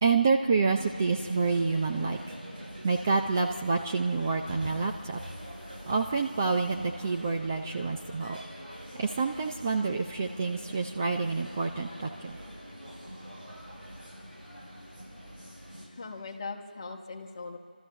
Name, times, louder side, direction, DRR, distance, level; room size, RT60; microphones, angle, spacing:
voice 1, 0.0-2.2 2.8-5.2 5.9-8.4 8.9-12.4, right 4 dB, 15° right, 2 dB, 0.5 m, -28 dB
sound 1, 0.8-15.9, equal, 75° right, 7.7 m, -44 dB
voice 2, 15.9-17.6, left 4 dB, 30° left, 2 dB, 1.5 m, -40 dB
29.0 x 13.0 x 7.5 m, 2.2 s
figure-of-eight pair, 170°, 5 cm